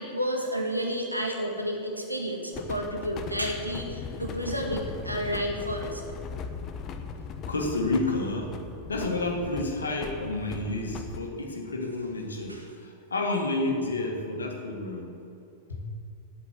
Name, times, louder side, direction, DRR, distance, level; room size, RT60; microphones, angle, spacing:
voice 1, 0.0-6.0 12.5-12.6, equal, 90° right, 1 dB, 1.5 m, -31 dB
sound 1, 2.5-11.2, left 5 dB, 30° left, 0.9 m, -38 dB
voice 2, 7.5-8.5 8.9-15.1 15.7-15.8, left 2 dB, 75° left, 2 dB, 1.8 m, -30 dB
8.8 x 8.4 x 8.3 m, 2.7 s
figure-of-eight pair, 90°, 0 cm